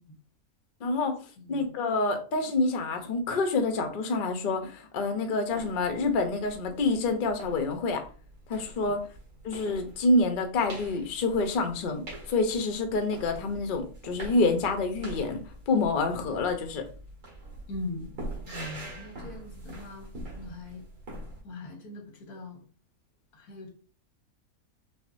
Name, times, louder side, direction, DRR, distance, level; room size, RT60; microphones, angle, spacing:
voice 1, 0.8-1.2 1.5-8.0 8.5-9.1 9.4-16.9, left 3 dB, 55° left, 6 dB, 0.6 m, -27 dB
voice 2, 1.4-1.7 8.8-8.9 17.7-20.1 20.3-20.8 21.4-22.6 23.3-23.7, left 2 dB, 90° left, 3 dB, 1.5 m, -41 dB
sound 1, 5.5-21.4, right 1 dB, 60° right, 1.9 m, -44 dB
5.8 x 2.1 x 2.5 m, 0.38 s
omnidirectional pair, 1.6 m